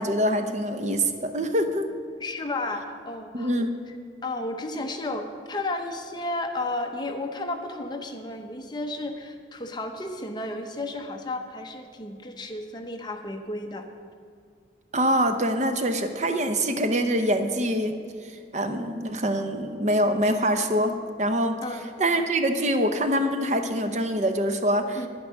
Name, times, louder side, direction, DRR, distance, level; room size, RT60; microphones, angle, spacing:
voice 1, 0.0-1.9 3.3-3.8 14.9-21.6 22.0-25.1, equal, 40° right, 7 dB, 0.7 m, -25 dB
voice 2, 2.2-3.5 4.2-13.9 21.6-21.9 25.0-25.1, left 2 dB, 25° left, 4 dB, 0.8 m, -33 dB
10.5 x 9.3 x 6.3 m, 2.2 s
head